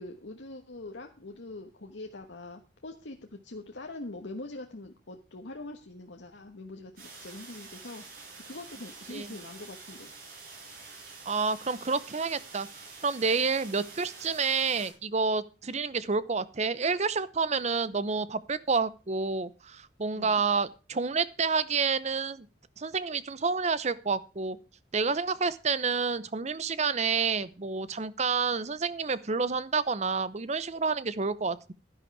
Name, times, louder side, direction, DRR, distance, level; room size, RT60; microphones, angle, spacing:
voice 1, 0.0-8.0 8.5-10.1 20.1-20.4, left 2 dB, 85° left, 3 dB, 1.3 m, -43 dB
sound 1, 7.0-14.9, right 4 dB, 55° right, 5.9 m, -47 dB
voice 2, 11.3-12.7 13.0-22.5 22.8-24.6 24.9-31.7, right 4 dB, 40° right, 16 dB, 0.7 m, -29 dB
11.5 x 11.0 x 4.7 m, 0.31 s
head